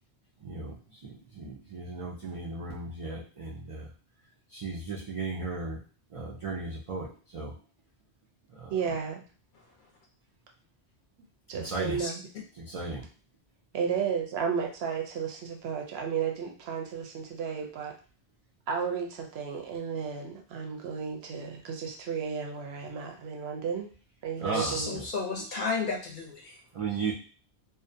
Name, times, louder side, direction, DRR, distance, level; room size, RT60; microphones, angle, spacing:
voice 1, 0.4-3.9 4.5-5.8 6.1-7.6 8.5-9.0 11.5-12.0 12.5-13.1 24.4-25.0 26.7-27.1, right 3 dB, 55° right, -5 dB, 0.3 m, -36 dB
voice 2, 8.7-9.2 11.5-12.1 13.7-17.9 18.7-23.9 24.2-24.9, right 6 dB, 70° right, 2 dB, 0.8 m, -33 dB
voice 3, 24.5-26.6, left 4 dB, 55° left, -1 dB, 0.6 m, -33 dB
2.5 x 2.1 x 2.6 m, 0.38 s
omnidirectional pair, 1.1 m